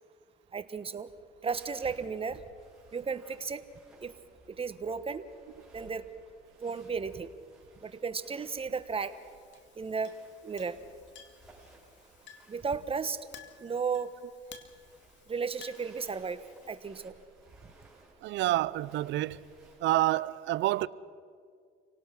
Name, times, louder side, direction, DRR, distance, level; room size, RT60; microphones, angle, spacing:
voice 1, 0.5-1.1 1.4-2.4 2.9-3.7 4.0-4.1 4.5-5.2 5.7-6.0 6.6-7.3 7.8-9.2 9.8-10.1 10.4-10.8 12.5-13.2 13.6-14.1 15.3-16.4 16.7-17.1, right 5 dB, 30° right, 1.3 m, -34 dB
sound 1, 1.5-20.0, right 1 dB, ahead, 6.6 m, -61 dB
Chink clink, 8.6-16.9, left 8 dB, 65° left, 2.4 m, -56 dB
voice 2, 18.2-19.4 19.8-20.9, right 15 dB, 65° right, 0.6 m, -28 dB
27.5 x 18.0 x 6.1 m
supercardioid pair, 85°, 20 cm